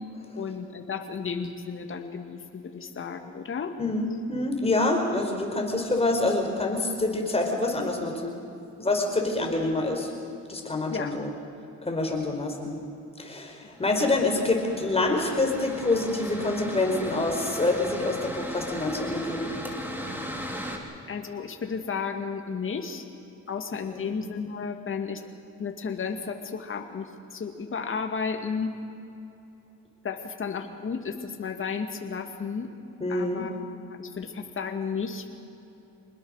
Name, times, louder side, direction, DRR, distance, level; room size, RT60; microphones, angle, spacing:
voice 1, 0.4-3.7 10.9-11.2 21.1-23.0 23.5-25.2 25.6-28.8 30.0-32.7 33.1-33.7 34.0-35.3, left 5 dB, 45° left, 5 dB, 2.3 m, -33 dB
voice 2, 3.8-8.4 8.8-10.1 10.5-11.3 11.8-12.8 13.2-19.5 23.9-24.2 33.0-33.4, left 2 dB, 20° left, 2 dB, 4.9 m, -26 dB
Mechanical fan, 13.7-20.8, equal, 5° right, 3.7 m, -37 dB
26.5 x 20.5 x 6.6 m, 2.8 s
cardioid pair, 90°, 30 cm